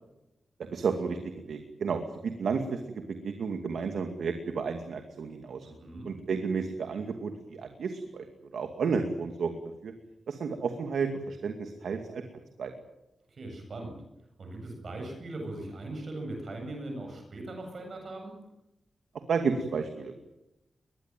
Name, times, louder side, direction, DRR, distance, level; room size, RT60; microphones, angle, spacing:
voice 1, 0.6-2.8 3.1-5.7 6.1-8.2 8.5-9.9 10.3-12.2 12.6-12.7 19.3-20.2, right 5 dB, 90° right, 6 dB, 2.3 m, -32 dB
voice 2, 5.6-6.1 13.3-14.0 14.4-18.3, right 2 dB, 50° right, 3 dB, 7.9 m, -39 dB
22.5 x 21.0 x 9.2 m, 0.94 s
wide cardioid pair, 165°, 0 cm